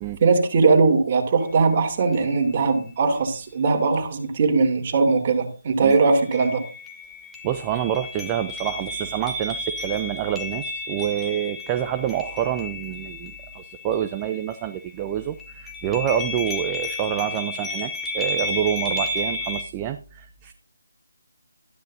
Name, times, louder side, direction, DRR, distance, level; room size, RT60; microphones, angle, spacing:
voice 1, 0.2-6.6, right 4 dB, 35° right, 2 dB, 2.8 m, -20 dB
sound 1, 1.4-1.5 2.1-2.7 5.9-15.0 15.4-19.6, left 2 dB, 5° left, 1.6 m, -33 dB
voice 2, 7.4-20.5, right 11 dB, 20° right, 7 dB, 0.5 m, -27 dB
13.0 x 11.5 x 2.7 m, 0.36 s
figure-of-eight pair, 155°, 0 cm